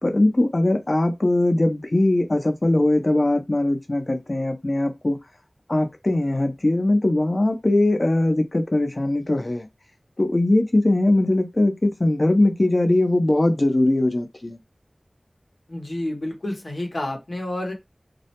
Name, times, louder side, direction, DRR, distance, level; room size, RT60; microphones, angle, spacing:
voice 1, 0.0-5.2 5.7-9.7 10.2-14.6, left 1 dB, 50° left, 0.6 m, -20 dB
voice 2, 15.7-17.7, left 1 dB, 85° left, 0.8 m, -29 dB
2.3 x 2.1 x 2.8 m
wide cardioid pair, 45°, 0 cm